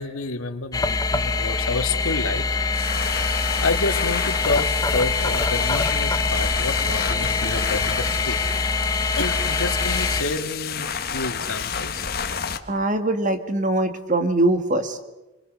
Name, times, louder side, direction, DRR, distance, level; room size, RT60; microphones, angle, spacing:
voice 1, 0.0-2.6 3.2-12.1, left 3 dB, 80° left, 7 dB, 1.9 m, -29 dB
sound 1, 0.7-10.2, left 3 dB, 15° left, 0.9 m, -24 dB
sound 2, 2.7-12.6, left 7 dB, 45° left, 1.4 m, -30 dB
Cough, 6.6-8.0 8.4-8.6 9.2-9.4 10.2-10.4 11.5-11.8, left 4 dB, 60° left, 2.0 m, -36 dB
voice 2, 12.7-15.0, right 2 dB, 35° right, 8 dB, 1.7 m, -22 dB
26.0 x 22.0 x 6.5 m, 1.1 s
head